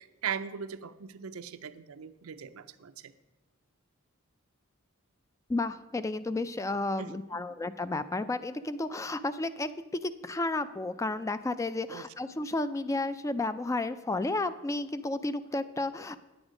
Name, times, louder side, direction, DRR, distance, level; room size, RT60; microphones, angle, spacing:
voice 1, 0.0-2.9 7.0-7.1 11.9-12.0, right 7 dB, 85° right, 11 dB, 0.5 m, -39 dB
voice 2, 5.5-16.2, left 2 dB, 15° left, 13 dB, 0.3 m, -32 dB
9.7 x 8.0 x 5.0 m, 1.1 s
head